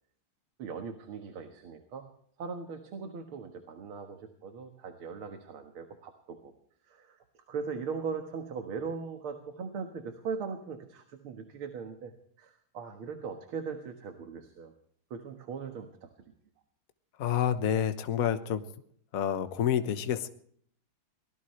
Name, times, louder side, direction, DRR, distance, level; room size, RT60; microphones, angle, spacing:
voice 1, 0.6-2.1 2.4-6.5 6.8-12.1 12.4-14.7 15.1-16.1, right 5 dB, 90° right, 5 dB, 2.4 m, -39 dB
voice 2, 17.2-18.6 19.1-20.3, left 9 dB, 50° left, 9 dB, 1.3 m, -28 dB
23.5 x 19.0 x 3.2 m, 0.63 s
omnidirectional pair, 2.3 m